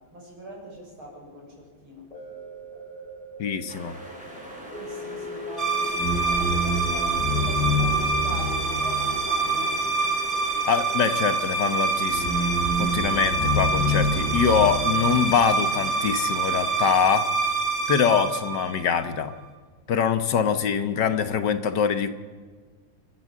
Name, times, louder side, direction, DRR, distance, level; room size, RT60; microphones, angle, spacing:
voice 1, 0.1-2.1 4.8-9.8, right 1 dB, 90° right, -2 dB, 7.3 m, -41 dB
sound 1, 2.1-12.5 12.9-13.0, left 1 dB, 20° left, 3.4 m, -41 dB
voice 2, 3.4-3.9 10.7-12.5 12.8-17.3 17.9-19.3 19.9-22.1, left 7 dB, 60° left, 10 dB, 1.5 m, -24 dB
sound 2, 3.7-17.2, equal, 5° right, 5.2 m, -43 dB
sound 3, 5.6-19.2, right 2 dB, 35° right, 2.4 m, -25 dB
29.5 x 12.0 x 7.6 m, 1.5 s
omnidirectional pair, 2.2 m